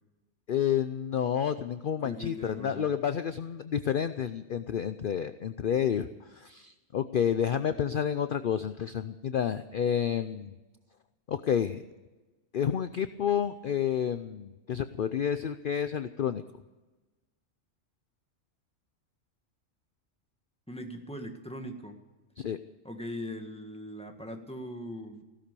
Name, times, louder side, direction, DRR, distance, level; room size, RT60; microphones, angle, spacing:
voice 1, 0.5-6.1 6.3-10.5 11.3-11.8 12.5-16.4 22.4-22.6, left 8 dB, 55° left, 11 dB, 0.7 m, -30 dB
voice 2, 2.0-2.9 20.7-22.0 22.8-25.2, equal, 5° left, 4 dB, 1.6 m, -40 dB
16.0 x 12.5 x 6.8 m, 1.2 s
omnidirectional pair, 1.3 m